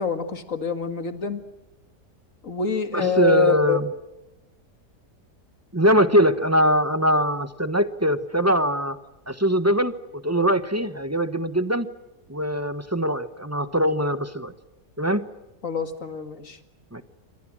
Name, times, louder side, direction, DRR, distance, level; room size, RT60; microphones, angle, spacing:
voice 1, 0.0-1.4 2.4-3.8 15.6-16.6, left 6 dB, 50° left, 9 dB, 2.3 m, -26 dB
voice 2, 2.9-3.9 5.7-9.0 9.3-11.9 12.3-14.5 15.0-15.2 16.9-17.0, equal, 10° right, 12 dB, 0.9 m, -22 dB
29.0 x 25.5 x 6.2 m, 1.0 s
omnidirectional pair, 1.8 m